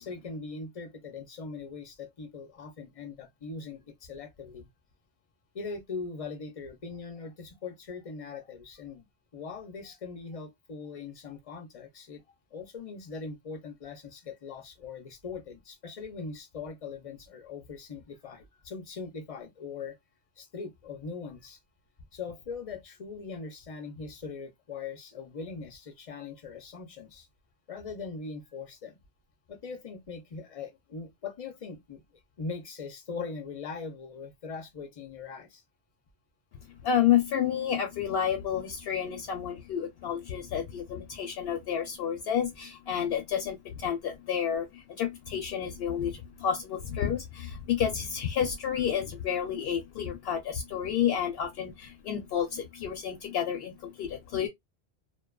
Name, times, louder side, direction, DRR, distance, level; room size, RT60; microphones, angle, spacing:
voice 1, 0.0-4.7 5.5-9.1 9.3-12.2 12.5-20.0 20.4-21.6 22.1-27.3 27.7-29.0 29.5-35.6, left 4 dB, 45° left, 0.5 m, -41 dB
voice 2, 36.7-54.5, left 9 dB, 75° left, 0.8 m, -30 dB
2.5 x 2.3 x 2.2 m
omnidirectional pair, 1.0 m